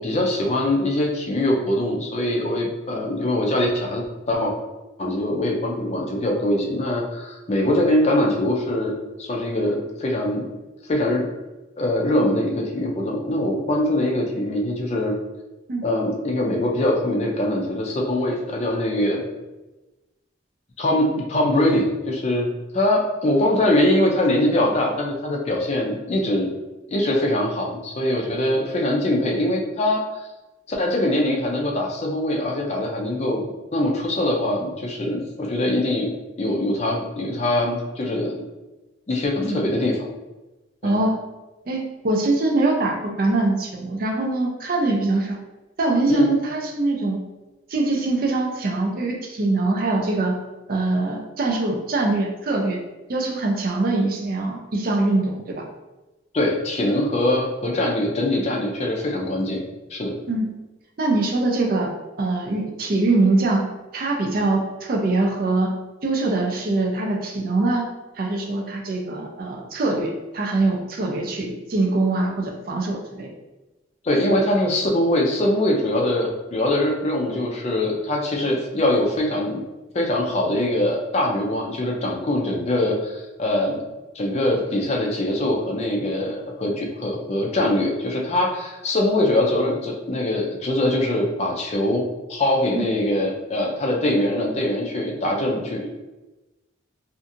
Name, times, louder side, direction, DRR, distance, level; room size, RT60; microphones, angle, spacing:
voice 1, 0.0-4.5 5.0-10.4 10.9-11.3 11.8-15.2 15.8-19.3 20.8-22.5 22.7-26.5 26.9-30.0 30.7-33.4 33.7-36.1 36.4-38.4 39.1-40.1 40.8-41.0 46.1-46.3 56.3-59.6 59.9-60.2 74.0-79.6 79.9-83.8 84.1-92.0 92.3-95.9, left 1 dB, 35° left, 0 dB, 0.4 m, -22 dB
voice 2, 40.8-41.2 41.7-45.4 45.8-47.2 47.7-50.4 50.7-52.8 53.1-55.7 60.3-60.6 61.0-63.7 63.9-65.7 66.0-67.9 68.2-73.3 92.7-92.8, right 2 dB, 50° right, 1 dB, 0.4 m, -23 dB
2.7 x 2.4 x 2.5 m, 1.1 s
head